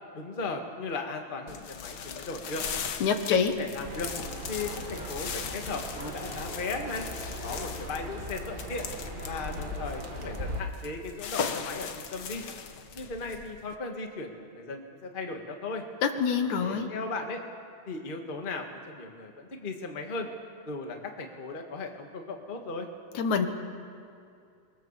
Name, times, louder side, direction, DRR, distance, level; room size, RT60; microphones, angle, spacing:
voice 1, 0.1-2.6 3.3-4.1 4.5-7.1 7.4-8.9 9.2-12.4 12.9-15.8 16.6-17.4 17.9-20.3 20.6-22.9, left 3 dB, 20° left, 3 dB, 1.4 m, -37 dB
sound 1, 1.5-13.8, left 6 dB, 65° left, 1.1 m, -39 dB
voice 2, 3.0-3.5 16.0-16.9 23.1-23.5, left 6 dB, 80° left, 7 dB, 2.8 m, -25 dB
sound 2, 3.8-10.6, equal, 20° right, 1.7 m, -39 dB
24.5 x 22.5 x 7.4 m, 2.5 s
omnidirectional pair, 3.4 m